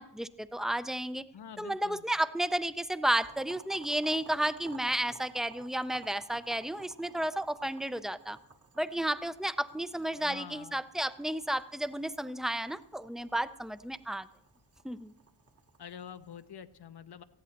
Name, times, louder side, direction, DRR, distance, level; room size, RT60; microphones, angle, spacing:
voice 1, 0.0-1.2 1.6-8.4 8.8-14.3 14.8-15.1, right 1 dB, ahead, 13 dB, 0.4 m, -32 dB
voice 2, 1.3-2.0 10.2-10.8 15.8-17.2, left 8 dB, 70° left, 12 dB, 0.7 m, -46 dB
Boiling, 3.2-16.5, right 5 dB, 35° right, 1.1 m, -55 dB
19.0 x 14.5 x 2.9 m, 0.78 s
wide cardioid pair, 90°, 41 cm